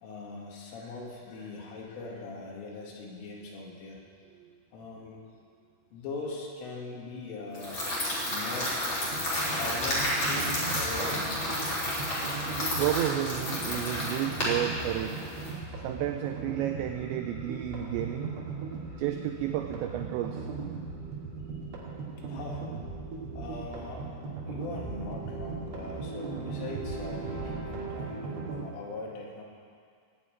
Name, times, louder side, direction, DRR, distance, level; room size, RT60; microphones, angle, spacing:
voice 1, 0.0-4.0 4.7-5.2 5.9-7.8 8.2-9.1 9.5-11.5 22.3-22.7 23.3-24.1 24.5-29.4, left 3 dB, 75° left, -2 dB, 4.6 m, -41 dB
voice 2, 4.3-4.6 12.8-15.2 15.8-18.4 19.0-20.5, right 12 dB, 85° right, 6 dB, 2.5 m, -32 dB
sound 1, 7.5-15.5, left 1 dB, 30° left, 3.3 m, -31 dB
sound 2, 9.1-28.6, right 4 dB, 70° right, 4.8 m, -38 dB
17.5 x 7.0 x 9.1 m, 2.2 s
omnidirectional pair, 5.8 m